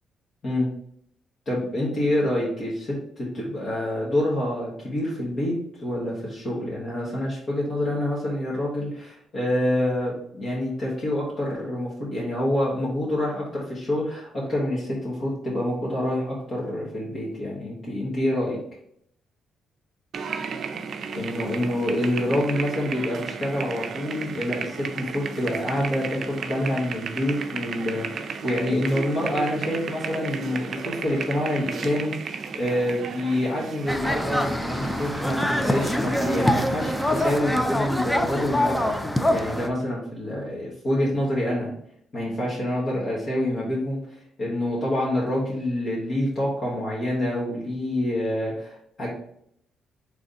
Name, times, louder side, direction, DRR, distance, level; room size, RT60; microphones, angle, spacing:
voice 1, 1.5-18.6 21.1-41.7 42.1-44.0 44.4-49.1, left 1 dB, 50° left, -6 dB, 1.4 m, -27 dB
sound 1, 20.1-37.4, right 5 dB, 55° right, 0.4 m, -34 dB
sound 2, 33.9-39.7, left 1 dB, 5° left, 0.4 m, -25 dB
3.8 x 3.3 x 4.0 m, 0.70 s
cardioid pair, 90°, 0 cm